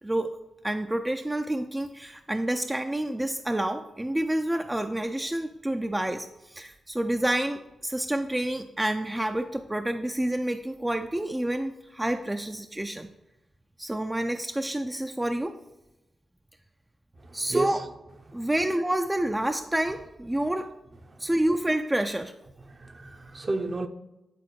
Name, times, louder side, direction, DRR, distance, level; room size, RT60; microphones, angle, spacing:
voice 1, 0.6-13.1 13.8-15.5 17.3-17.8 18.3-20.7 21.2-22.3, right 1 dB, 15° right, 0.4 m, -28 dB
voice 2, 17.5-17.8 22.8-23.9, right 2 dB, 45° right, 0.7 m, -30 dB
9.4 x 4.1 x 3.1 m
supercardioid pair, 45°, 0 cm